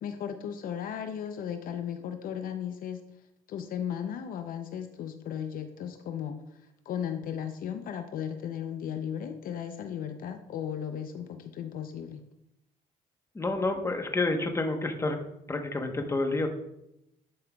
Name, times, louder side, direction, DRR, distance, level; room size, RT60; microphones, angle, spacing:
voice 1, 0.0-3.0 3.5-6.3 6.9-12.2, left 8 dB, 60° left, 7 dB, 0.6 m, -35 dB
voice 2, 13.3-15.2 15.5-16.5, left 2 dB, 15° left, 5 dB, 1.0 m, -29 dB
11.0 x 5.5 x 2.3 m, 0.83 s
cardioid pair, 90°, 16 cm